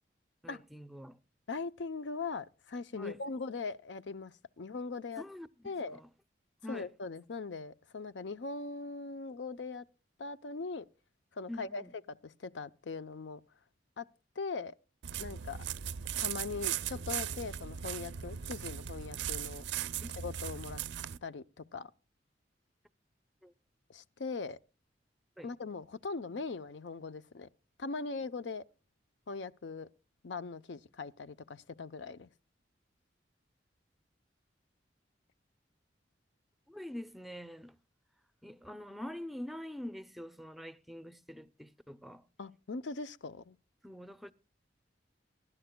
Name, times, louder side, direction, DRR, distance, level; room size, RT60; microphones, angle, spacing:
voice 1, 0.4-1.2 2.9-3.2 5.2-6.1 6.6-6.9 11.5-11.9 15.4-15.5 20.0-20.1 23.4-23.5 25.4-25.5 36.7-37.8 38.4-42.2 43.8-44.3, left 1 dB, ahead, 0.5 m, -45 dB
voice 2, 1.5-5.2 5.6-6.0 6.7-9.8 10.2-10.9 11.4-11.8 12.1-13.4 14.0-14.1 14.4-14.7 15.2-15.6 16.2-19.6 20.2-20.8 21.2-21.9 23.9-24.6 25.4-27.5 27.8-28.6 29.3-29.9 30.2-32.3 42.4-43.6, left 4 dB, 75° left, 0.6 m, -40 dB
sound 1, 15.0-21.2, right 9 dB, 75° right, 0.5 m, -38 dB
23.0 x 11.0 x 2.2 m
head